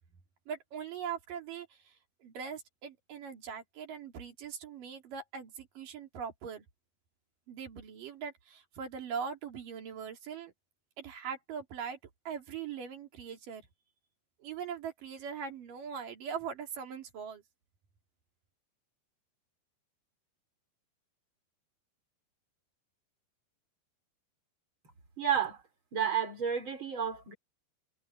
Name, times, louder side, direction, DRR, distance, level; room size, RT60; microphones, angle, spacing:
voice 1, 0.5-1.9 2.2-6.6 7.5-10.5 11.0-12.0 12.3-13.6 14.4-17.4, right 7 dB, 55° right, 4.3 m, -41 dB
voice 2, 25.2-25.6 25.9-27.3, right 8 dB, 30° right, 5.0 m, -31 dB
omnidirectional pair, 4.7 m